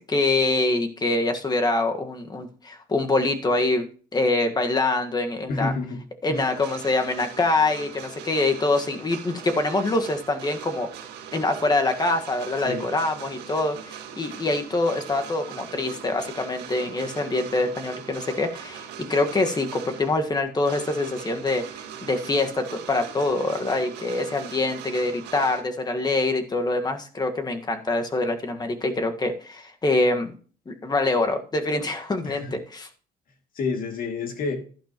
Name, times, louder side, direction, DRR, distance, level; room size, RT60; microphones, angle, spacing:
voice 1, 0.0-3.8 4.1-5.7 6.2-10.9 11.3-21.6 22.0-30.3 30.7-32.9, left 2 dB, 25° left, 1.5 m, -25 dB
voice 2, 5.5-6.0 6.3-6.4 12.6-12.8 32.2-32.5 33.6-34.6, left 4 dB, 55° left, 2.4 m, -29 dB
sound 1, 6.3-25.6, right 9 dB, 80° right, 1.8 m, -41 dB
12.0 x 11.0 x 3.0 m
cardioid pair, 110°, 17 cm